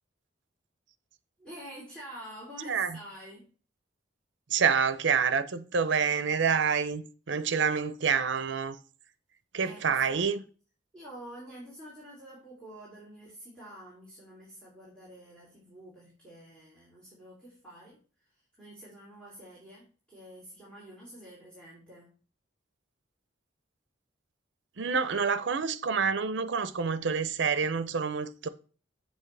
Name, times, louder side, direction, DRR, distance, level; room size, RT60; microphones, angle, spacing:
voice 1, 1.4-3.5 9.6-10.2 10.9-22.2, equal, 5° left, 2.9 m, -48 dB
voice 2, 4.5-8.8 9.5-10.4 24.8-28.5, right 6 dB, 65° right, 0.6 m, -27 dB
7.7 x 7.1 x 3.3 m
head